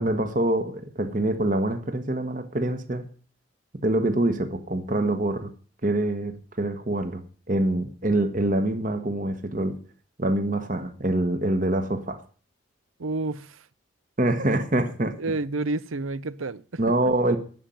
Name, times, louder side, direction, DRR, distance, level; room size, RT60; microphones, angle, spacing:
voice 1, 0.0-3.1 3.8-5.5 5.8-7.2 7.5-9.8 10.2-12.2 14.2-15.1 16.8-17.4, right 1 dB, 40° right, 1.2 m, -25 dB
voice 2, 13.0-13.6 15.2-16.6 17.0-17.1, right 2 dB, 90° right, 0.7 m, -29 dB
11.0 x 7.6 x 9.3 m
head